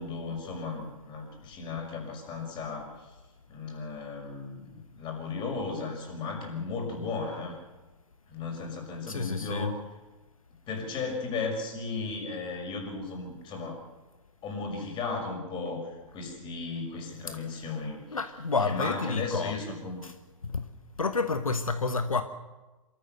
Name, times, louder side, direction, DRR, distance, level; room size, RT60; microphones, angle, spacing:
voice 1, 0.0-3.1 3.5-7.6 8.3-9.8 10.7-13.8 14.4-18.2 18.6-20.1, left 4 dB, 30° left, 2 dB, 5.9 m, -35 dB
voice 2, 9.1-9.7 17.3-17.4 18.1-19.6 20.0-20.1 20.4-20.7 21.0-22.2, left 4 dB, 90° left, 9 dB, 1.2 m, -29 dB
26.0 x 14.0 x 7.9 m, 1.2 s
figure-of-eight pair, 115°, 17 cm